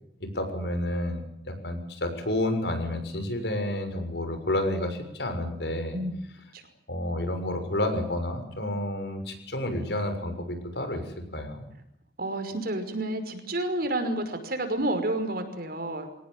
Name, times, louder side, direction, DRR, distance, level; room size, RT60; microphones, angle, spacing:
voice 1, 0.2-6.0 6.9-11.0 11.3-11.7, left 1 dB, 70° left, 7 dB, 6.7 m, -30 dB
voice 2, 12.2-16.1, right 1 dB, 60° right, 7 dB, 5.6 m, -30 dB
25.0 x 18.5 x 9.2 m, 0.76 s
head